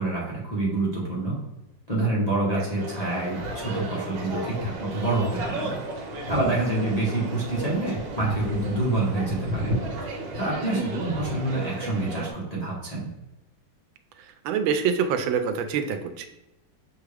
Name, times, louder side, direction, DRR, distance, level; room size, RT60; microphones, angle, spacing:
voice 1, 0.0-1.4 1.9-5.8 6.3-9.7 10.4-13.1, right 2 dB, 30° left, -6 dB, 0.7 m, -27 dB
sound 1, 2.8-12.3, right 1 dB, 70° right, 1.5 m, -33 dB
voice 2, 10.7-11.1 14.4-16.3, right 6 dB, 85° right, 8 dB, 1.4 m, -26 dB
6.3 x 2.4 x 3.3 m, 0.97 s
omnidirectional pair, 2.1 m